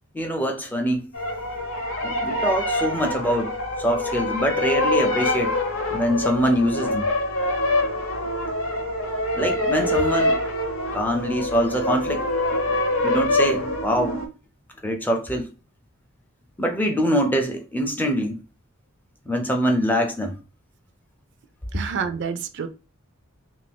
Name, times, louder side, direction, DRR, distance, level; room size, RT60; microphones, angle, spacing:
voice 1, 0.1-1.1 2.0-3.5 3.8-5.6 5.9-7.1 9.3-10.4 10.9-12.2 13.0-14.1 14.8-15.5 16.6-18.4 19.3-20.4, equal, 10° left, 0.4 m, -24 dB
sound 1, 1.1-14.3, left 1 dB, 85° left, 0.9 m, -25 dB
voice 2, 21.7-22.7, right 6 dB, 55° right, 0.4 m, -28 dB
2.9 x 2.5 x 3.4 m
head